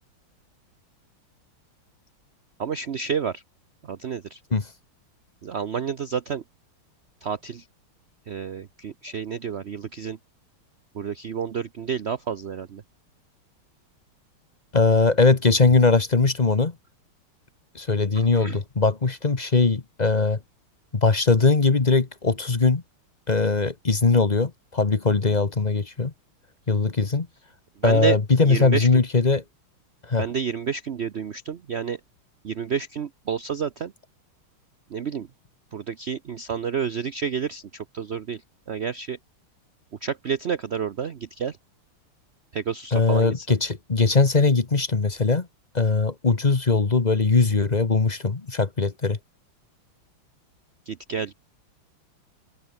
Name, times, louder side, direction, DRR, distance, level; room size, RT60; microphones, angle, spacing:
voice 1, 2.6-3.4 3.8-4.4 5.4-6.4 7.2-7.7 8.3-10.2 10.9-12.8 18.1-18.6 27.8-28.2 28.4-28.9 30.2-32.0 32.4-33.9 34.9-35.3 35.7-39.2 40.0-41.6 42.5-43.5 50.9-51.3, right 7 dB, 60° right, 0.6 m, -30 dB
voice 2, 14.7-16.7 17.7-20.4 20.9-22.8 23.3-26.1 26.7-27.3 27.8-29.4 30.0-30.2 42.9-45.5 45.7-49.2, left 4 dB, 25° left, 1.0 m, -20 dB
open air
omnidirectional pair, 2.3 m